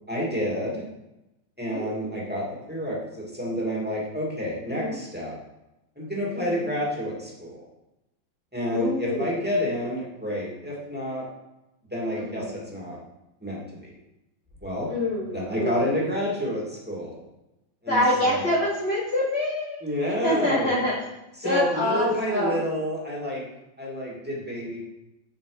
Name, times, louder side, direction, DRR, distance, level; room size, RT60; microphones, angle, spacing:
voice 1, 0.1-0.8 1.6-5.4 6.0-7.6 8.5-11.2 11.9-13.0 13.4-13.9 14.6-14.9 15.3-17.2 17.8-18.5 19.8-20.7 21.4-23.4 23.8-24.8, equal, 5° right, -5 dB, 2.4 m, -29 dB
voice 2, 1.7-2.3 4.8-5.0 6.3-6.7 8.7-9.4 12.2-12.5 14.9-15.8 17.9-20.9 21.4-22.6, left 1 dB, 35° left, -5 dB, 1.4 m, -26 dB
7.8 x 7.6 x 5.1 m, 0.93 s
omnidirectional pair, 2.2 m